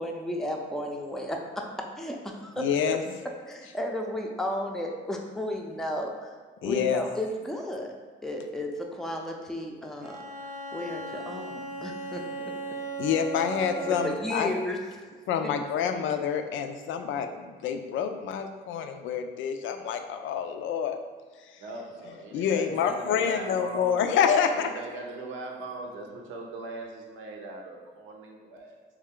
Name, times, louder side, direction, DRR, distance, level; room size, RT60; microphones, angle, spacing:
voice 1, 0.0-3.0 3.5-6.3 6.6-7.9 8.2-10.2 10.7-12.5 13.7-14.8 15.4-15.5, left 1 dB, ahead, 0 dB, 0.5 m, -33 dB
voice 2, 2.6-3.0 6.6-7.0 13.0-14.6 15.3-21.0 21.5-21.6 22.3-24.7, left 7 dB, 75° left, 7 dB, 0.4 m, -27 dB
Bowed string instrument, 10.0-14.4, right 3 dB, 40° right, 0.7 m, -37 dB
voice 3, 21.6-28.8, right 2 dB, 85° right, 0 dB, 0.7 m, -40 dB
3.3 x 3.2 x 3.6 m, 1.5 s
cardioid pair, 90°, 20 cm